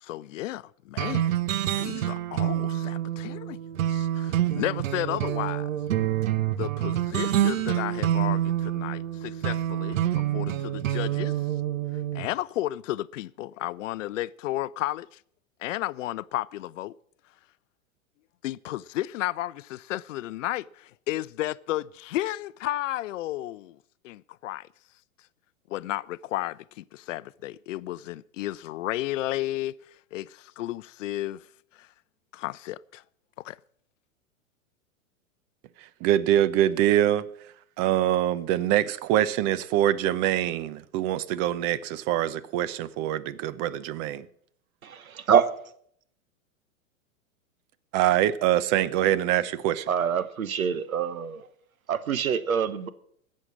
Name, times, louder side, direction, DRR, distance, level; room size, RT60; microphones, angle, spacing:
voice 1, 0.0-1.3 1.8-3.6 3.9-5.7 6.6-10.0 10.3-11.3 12.1-15.1 15.6-16.9 18.4-23.8 24.0-24.6 25.7-29.8 30.1-31.4 32.3-33.0 33.4-33.6, left 15 dB, 65° left, 0.6 m, -33 dB
sound 1, 1.0-12.3, right 12 dB, 70° right, 0.9 m, -27 dB
voice 2, 36.0-37.3 37.8-44.3 47.9-49.9, right 12 dB, 40° right, 0.7 m, -24 dB
voice 3, 49.9-51.5 51.9-52.9, right 8 dB, 90° right, 1.1 m, -25 dB
16.5 x 6.5 x 7.4 m
hypercardioid pair, 120°, 41 cm